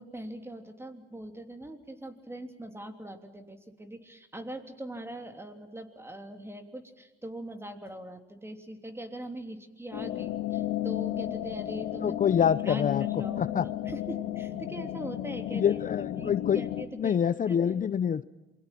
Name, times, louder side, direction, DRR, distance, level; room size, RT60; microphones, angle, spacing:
voice 1, 0.0-12.2 12.6-15.8 16.1-17.2 17.5-17.7, right 1 dB, 10° right, 6 dB, 3.2 m, -42 dB
sound 1, 9.9-16.8, left 13 dB, 90° left, 1.9 m, -33 dB
voice 2, 12.0-13.0 13.4-13.6 15.5-16.6 17.0-18.2, left 8 dB, 40° left, 15 dB, 0.7 m, -26 dB
27.5 x 23.0 x 5.9 m, 1.1 s
cardioid pair, 90°, 20 cm